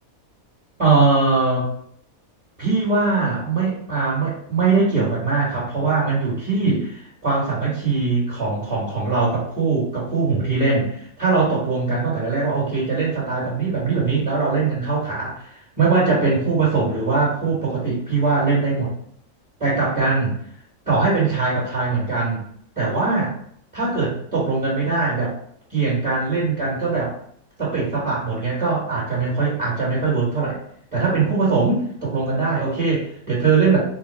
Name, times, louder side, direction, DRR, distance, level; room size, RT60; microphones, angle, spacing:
voice 1, 0.8-1.7 2.6-18.9 19.6-20.3 20.9-22.4 22.7-23.3 23.7-25.3 25.7-27.2 27.6-30.6 30.9-33.8, right 4 dB, 25° right, -8 dB, 1.5 m, -21 dB
3.6 x 2.2 x 4.4 m, 0.64 s
omnidirectional pair, 1.5 m